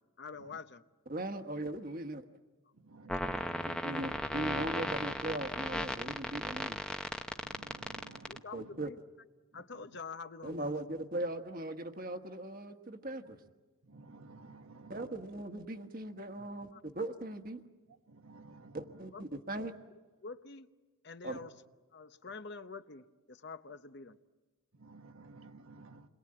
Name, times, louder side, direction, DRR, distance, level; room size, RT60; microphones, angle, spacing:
voice 1, 0.2-0.8 8.3-9.0 9.5-10.9 16.7-16.8 19.1-19.7 20.2-20.7 21.0-21.5 21.9-24.2, left 4 dB, 50° left, 0.8 m, -47 dB
voice 2, 1.1-2.2 3.7-6.8 8.5-8.9 10.4-13.4 14.9-17.6 18.7-19.7 21.2-21.4, right 1 dB, 40° right, 1.3 m, -39 dB
voice 3, 2.8-4.1 7.4-8.4 13.9-14.9 18.1-18.8 24.8-26.1, right 3 dB, 75° right, 1.3 m, -54 dB
sound 1, 3.1-8.4, left 1 dB, 5° left, 0.8 m, -35 dB
29.0 x 22.0 x 8.8 m
head